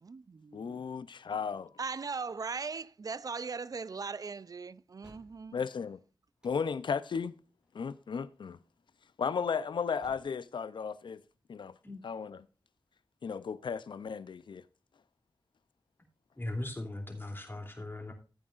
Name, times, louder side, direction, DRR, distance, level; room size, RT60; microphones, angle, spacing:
voice 1, 0.0-0.9 1.8-5.6, right 5 dB, 50° right, 0.4 m, -39 dB
voice 2, 0.5-1.7 5.5-6.0 6.4-7.3 7.7-8.6 9.2-11.2 11.5-11.7 12.0-12.4 13.2-14.6, left 6 dB, 80° left, 0.5 m, -35 dB
sound 1, 5.0-5.7 6.4-7.0 7.6-7.9 8.2-8.3 10.0-10.2, right 1 dB, 10° right, 2.4 m, -58 dB
voice 3, 16.3-18.1, left 1 dB, 25° left, 2.9 m, -39 dB
15.0 x 8.7 x 2.5 m
wide cardioid pair, 75°, 8 cm